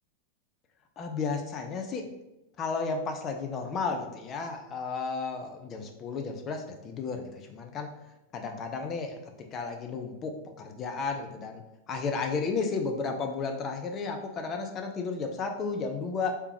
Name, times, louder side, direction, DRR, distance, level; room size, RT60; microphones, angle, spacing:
voice 1, 1.0-2.1 2.6-7.9 8.3-11.6 11.9-16.3, left 4 dB, 30° left, 4 dB, 0.6 m, -33 dB
3.4 x 3.0 x 4.7 m, 0.93 s
figure-of-eight pair, 90°, 0 cm